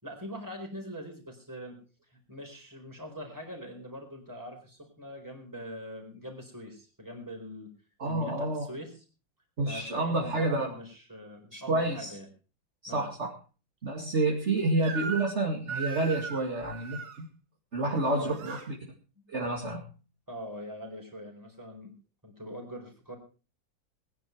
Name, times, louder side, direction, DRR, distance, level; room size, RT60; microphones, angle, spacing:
voice 1, 0.0-1.8 2.1-7.7 8.0-9.0 9.6-12.3 12.9-13.1 18.0-18.4 20.3-21.9 22.2-23.2, equal, 10° right, 2 dB, 4.6 m, -42 dB
voice 2, 8.0-8.7 9.6-10.7 11.5-12.1 12.8-13.3 13.8-17.3 17.7-18.7 19.3-19.8, right 2 dB, 35° right, -1 dB, 2.6 m, -29 dB
Crying sobbing / Screech, 14.8-15.4 15.7-17.2 18.0-18.7, right 5 dB, 80° right, 2.6 m, -38 dB
20.5 x 10.5 x 4.6 m, 0.35 s
omnidirectional pair, 2.1 m